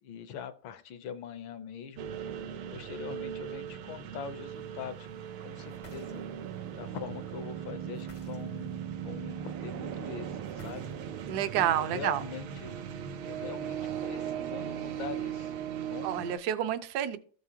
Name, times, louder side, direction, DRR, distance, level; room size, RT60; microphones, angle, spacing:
voice 1, 0.0-5.1 5.4-6.3 6.8-10.9 11.8-12.8 13.2-15.5 15.9-16.3, left 7 dB, 75° left, 10 dB, 1.5 m, -43 dB
sound 1, 2.0-16.4, right 9 dB, 90° right, 1.6 m, -38 dB
sound 2, 5.7-6.5 7.9-8.8 10.4-11.3, left 2 dB, 50° left, 0.4 m, -55 dB
voice 2, 11.3-12.2 16.0-17.2, right 10 dB, 65° right, 10 dB, 1.1 m, -29 dB
14.0 x 4.8 x 2.8 m, 0.43 s
omnidirectional pair, 2.2 m